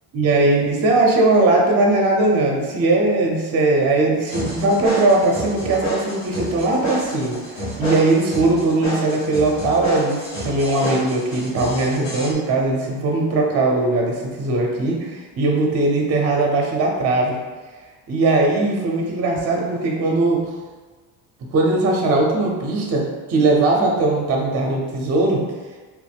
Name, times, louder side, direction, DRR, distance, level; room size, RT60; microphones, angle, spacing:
voice 1, 0.1-7.4 7.8-17.4 18.1-20.4 21.5-25.4, right 2 dB, 35° right, 0 dB, 0.7 m, -19 dB
sound 1, 4.3-12.3, right 1 dB, 80° left, 1.4 m, -29 dB
3.0 x 2.1 x 3.4 m, 1.3 s
supercardioid pair, 105°, 40 cm